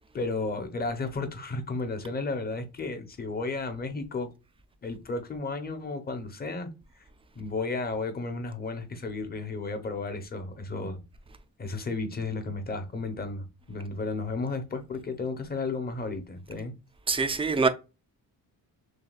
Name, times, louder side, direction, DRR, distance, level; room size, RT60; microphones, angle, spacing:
voice 1, 0.1-4.3 4.8-6.7 7.4-11.0 11.6-16.7, left 3 dB, 25° left, 0.8 m, -33 dB
voice 2, 17.1-17.7, right 4 dB, 15° right, 0.4 m, -24 dB
6.4 x 2.2 x 2.4 m
cardioid pair, 145°, 36 cm